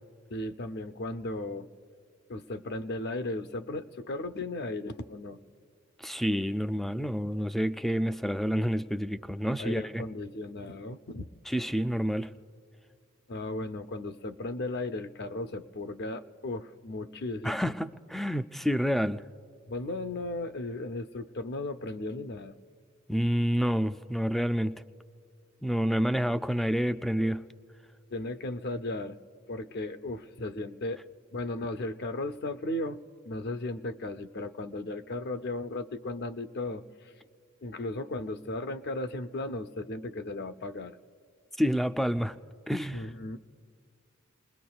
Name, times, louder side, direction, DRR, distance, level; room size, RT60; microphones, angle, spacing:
voice 1, 0.3-1.7 2.3-5.4 9.6-11.3 11.7-11.8 13.3-17.7 19.7-22.6 28.1-29.2 29.5-31.0 31.3-33.0 33.2-37.1 37.6-41.0 42.9-43.4, left 2 dB, 50° left, 0.6 m, -36 dB
voice 2, 6.0-10.1 11.5-12.3 17.4-19.2 23.1-24.7 25.6-27.4 41.6-42.4 42.7-43.0, equal, ahead, 0.3 m, -28 dB
29.5 x 21.0 x 2.3 m
head